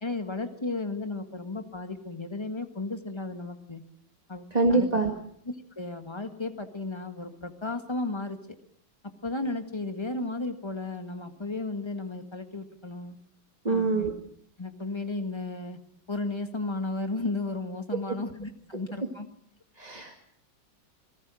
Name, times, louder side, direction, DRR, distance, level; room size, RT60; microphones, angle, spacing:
voice 1, 0.0-3.8 4.3-4.9 5.5-8.4 9.2-13.2 13.7-14.1 14.6-15.8 16.1-19.3, left 2 dB, 15° left, 7 dB, 1.8 m, -34 dB
voice 2, 4.5-5.1 13.6-14.1 19.8-20.1, right 3 dB, 25° right, 3 dB, 1.9 m, -24 dB
27.0 x 19.0 x 6.4 m, 0.65 s
omnidirectional pair, 1.9 m